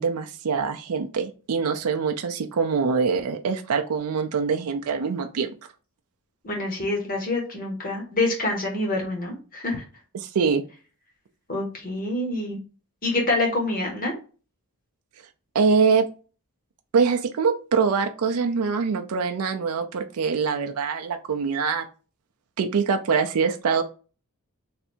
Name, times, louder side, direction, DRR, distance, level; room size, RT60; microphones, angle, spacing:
voice 1, 0.0-5.5 10.1-10.6 15.5-16.0 16.9-21.8 22.6-23.8, right 5 dB, 85° right, 5 dB, 0.5 m, -24 dB
voice 2, 6.4-9.8 11.5-12.6 13.0-14.1, left 2 dB, 40° left, 0 dB, 1.3 m, -26 dB
3.3 x 2.7 x 4.2 m, 0.36 s
head